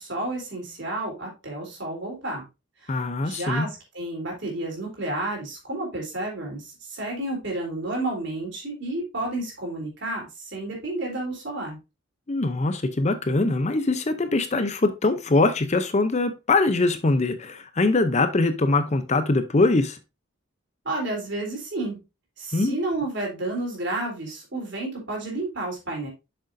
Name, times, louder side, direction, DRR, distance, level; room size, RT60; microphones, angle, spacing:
voice 1, 0.0-2.4 2.8-10.2 10.5-11.8 20.9-22.0 22.4-26.1, right 2 dB, 55° right, 3.5 m, -31 dB
voice 2, 2.9-3.7 12.3-20.0 22.5-22.8, left 2 dB, 35° left, 0.6 m, -22 dB
7.7 x 6.5 x 2.6 m
head